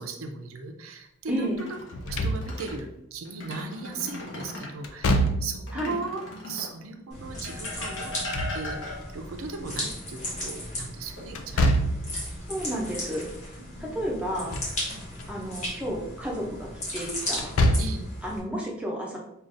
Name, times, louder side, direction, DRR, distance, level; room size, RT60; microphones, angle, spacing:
voice 1, 0.0-1.8 2.0-8.1 8.5-12.2 13.6-14.1 14.9-15.0 17.8-18.0, right 4 dB, 80° right, 4 dB, 0.5 m, -37 dB
voice 2, 1.3-1.6 5.7-6.0 12.5-13.3 13.8-14.6 15.3-17.6 18.2-19.2, equal, 5° right, -2 dB, 0.6 m, -31 dB
abandoned-ballroom-objects-wood-metal, 1.4-2.8 3.3-4.8 5.7-6.8 7.4-9.3 11.2-11.9 12.3-12.5 15.4-16.0 16.7-17.4, left 2 dB, 60° left, 0.9 m, -39 dB
Slam / Thump thud, 1.9-2.8 4.8-5.7 8.0-9.0 11.4-12.2 14.2-14.8 15.2-15.3 17.3-18.1, equal, 75° left, 0.4 m, -25 dB
sound 1, 7.1-18.4, left 1 dB, 35° left, 1.2 m, -36 dB
5.0 x 2.4 x 2.6 m, 0.82 s
head